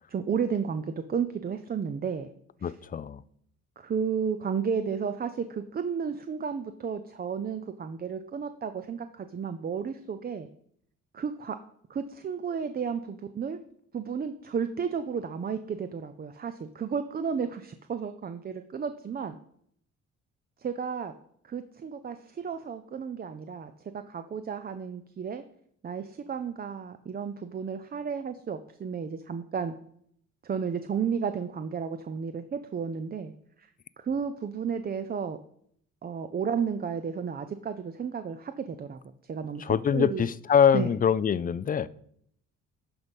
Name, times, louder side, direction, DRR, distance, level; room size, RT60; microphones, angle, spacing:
voice 1, 0.1-2.3 2.6-2.7 3.8-10.5 11.1-11.6 11.9-13.6 13.9-19.4 20.6-21.1 21.4-25.4 25.8-29.7 30.4-33.3 33.6-33.7 34.0-35.4 36.0-39.0 39.3-40.3 40.7-40.9, right 6 dB, 30° right, 0.5 m, -32 dB
voice 2, 2.6-3.2 39.6-41.9, left 7 dB, 30° left, 0.4 m, -24 dB
11.5 x 4.0 x 5.3 m
cardioid pair, 90°, 30 cm